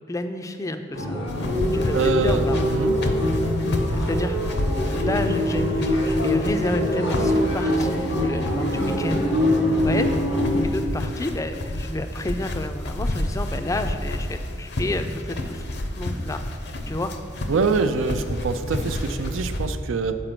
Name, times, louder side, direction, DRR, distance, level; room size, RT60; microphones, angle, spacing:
voice 1, 0.1-1.2 1.7-2.6 3.5-3.6 3.9-4.5 4.8-9.3 9.7-10.2 10.6-15.7 16.0-16.4 16.9-17.1, left 1 dB, 15° left, 8 dB, 0.4 m, -30 dB
sound 1, 0.9-10.6, left 1 dB, 85° left, 1.7 m, -23 dB
sound 2, 1.3-19.7, left 1 dB, 60° left, 0.7 m, -30 dB
voice 2, 1.9-2.9 17.5-20.2, right 4 dB, 85° right, 8 dB, 0.4 m, -25 dB
7.8 x 4.8 x 5.9 m, 2.3 s
head